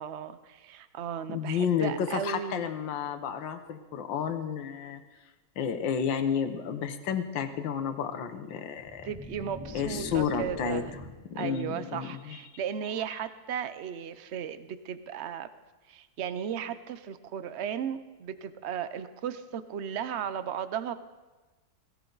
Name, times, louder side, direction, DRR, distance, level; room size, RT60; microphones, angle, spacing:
voice 1, 0.0-2.7 9.0-10.9 11.3-15.5 15.9-20.9, right 8 dB, 65° right, 12 dB, 0.7 m, -35 dB
voice 2, 1.3-5.0 5.6-9.1 9.7-10.9 11.3-12.4, left 7 dB, 80° left, 8 dB, 1.7 m, -31 dB
sound 1, 8.8-11.3, left 1 dB, 10° right, 3.9 m, -41 dB
17.5 x 17.5 x 4.0 m, 1.2 s
omnidirectional pair, 2.0 m